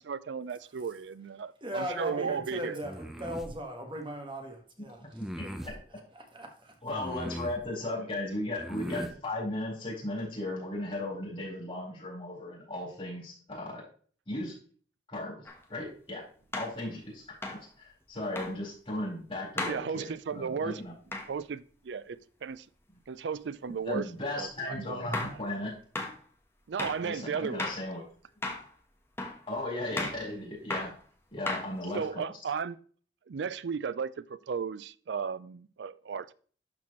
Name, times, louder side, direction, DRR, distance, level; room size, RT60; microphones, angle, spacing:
voice 1, 0.0-2.8 7.9-8.2 19.6-20.8 21.3-22.7 23.1-24.1 24.4-25.2 26.7-27.6 31.9-32.8 33.3-36.3, right 6 dB, 70° right, 0.4 m, -35 dB
voice 2, 1.6-5.7 6.1-6.7 7.0-7.1, equal, 30° right, 1.4 m, -39 dB
sound 1, 2.8-3.5 5.1-5.8 6.9-7.6 8.6-9.2, equal, ahead, 0.6 m, -39 dB
voice 3, 6.8-13.8 14.3-14.6 15.1-16.2 16.5-20.9 23.9-25.8 27.0-28.0 29.5-30.9 31.3-32.2, left 1 dB, 30° left, 4.1 m, -36 dB
sound 2, 15.5-15.6 16.5-16.8 17.4-17.7 18.4-18.6 19.6-19.8 21.1-21.3 24.4-24.5 25.1-25.4 26.0-26.2 26.8-27.0 27.6-27.9 28.4-28.7 29.2-29.4 30.0-30.2 30.7-31.0 31.5-32.0, left 2 dB, 15° left, 1.1 m, -35 dB
12.0 x 4.3 x 3.0 m
head